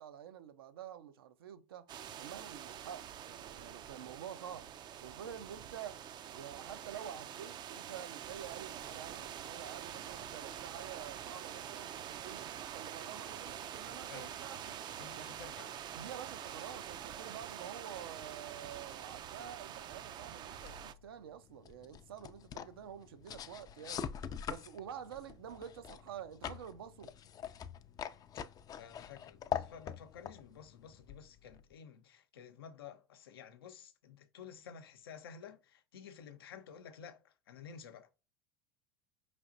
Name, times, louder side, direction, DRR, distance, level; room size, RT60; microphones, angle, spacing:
voice 1, 0.0-1.9 2.2-4.7 5.0-6.0 6.4-14.8 15.1-15.3 15.9-24.0 24.5-27.1, right 9 dB, 85° right, 0.6 m, -48 dB
sound 1, 1.9-20.9, right 10 dB, 35° right, 0.4 m, -46 dB
voice 2, 14.1-14.4 15.0-15.7 28.7-38.1, left 7 dB, 85° left, 0.6 m, -52 dB
sound 2, 20.6-31.7, left 8 dB, 30° left, 0.4 m, -44 dB
4.9 x 3.3 x 2.6 m
hypercardioid pair, 90°, 12 cm